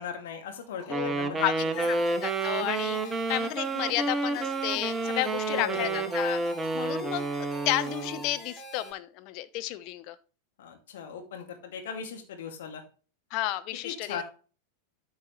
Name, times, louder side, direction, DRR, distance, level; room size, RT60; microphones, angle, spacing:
voice 1, 0.0-2.0 5.5-6.0 10.6-12.8 13.8-14.2, left 7 dB, 55° left, 4 dB, 2.3 m, -38 dB
Wind instrument woodwind instrument, 0.9-8.3, right 3 dB, 15° right, 0.9 m, -30 dB
voice 2, 1.4-6.4 6.7-10.1 13.3-14.2, left 15 dB, 40° left, 11 dB, 0.8 m, -32 dB
sound 1, 1.7-8.9, left 2 dB, 10° left, 2.9 m, -45 dB
13.5 x 4.7 x 3.2 m, 0.36 s
figure-of-eight pair, 90°, 0 cm